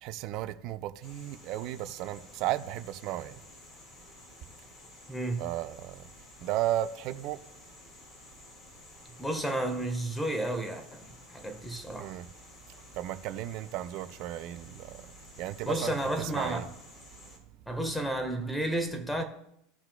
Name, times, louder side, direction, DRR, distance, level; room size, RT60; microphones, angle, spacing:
voice 1, 0.0-3.4 5.4-6.0 6.4-7.4 12.0-12.3 12.9-15.0 15.4-16.7, right 13 dB, 50° right, 0.5 m, -34 dB
sound 1, 1.0-17.4, left 2 dB, 30° left, 2.3 m, -53 dB
voice 2, 5.1-5.5 9.2-12.1 15.6-16.7 17.7-19.2, right 1 dB, 5° left, 1.5 m, -32 dB
15.5 x 5.8 x 2.3 m
figure-of-eight pair, 80°, 0 cm